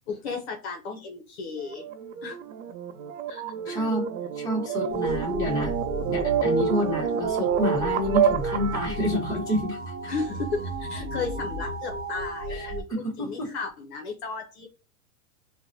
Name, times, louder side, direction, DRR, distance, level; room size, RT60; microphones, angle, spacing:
voice 1, 0.1-1.9 2.2-2.4 3.3-3.9 4.7-5.2 10.1-14.7, left 4 dB, 50° left, 3 dB, 0.7 m, -35 dB
sound 1, 1.6-9.0, right 7 dB, 70° right, 0.6 m, -28 dB
voice 2, 3.7-4.1 4.3-5.8 6.1-9.9 12.5-13.5, left 1 dB, 10° left, -4 dB, 1.0 m, -28 dB
sound 2, 4.9-12.8, right 2 dB, 35° right, 0.7 m, -34 dB
4.4 x 2.2 x 2.7 m, 0.33 s
supercardioid pair, 150°, 42 cm